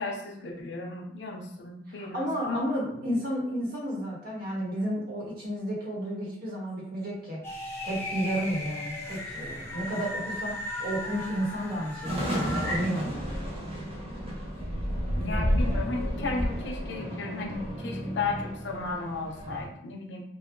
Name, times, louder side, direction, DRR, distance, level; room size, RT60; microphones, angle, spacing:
voice 1, 0.0-2.6 15.1-20.2, left 3 dB, 70° left, 0 dB, 0.7 m, -35 dB
voice 2, 1.9-7.4 7.8-13.4 15.2-15.6, equal, 55° right, -4 dB, 1.3 m, -32 dB
sound 1, 7.4-12.8, left 1 dB, 15° left, 0.9 m, -36 dB
sound 2, 12.0-19.7, equal, 30° right, 1.2 m, -31 dB
3.2 x 2.2 x 3.7 m, 0.71 s
head